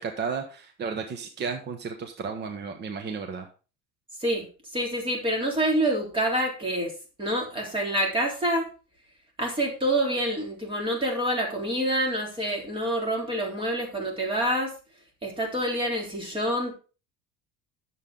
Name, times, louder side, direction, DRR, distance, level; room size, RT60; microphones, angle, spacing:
voice 1, 0.0-3.5, right 5 dB, 35° right, 5 dB, 1.2 m, -33 dB
voice 2, 4.2-6.9 7.2-8.7 9.4-14.7 15.2-16.7, right 1 dB, 15° right, 0 dB, 3.6 m, -27 dB
10.5 x 7.5 x 3.7 m, 0.33 s
cardioid pair, 140°, 31 cm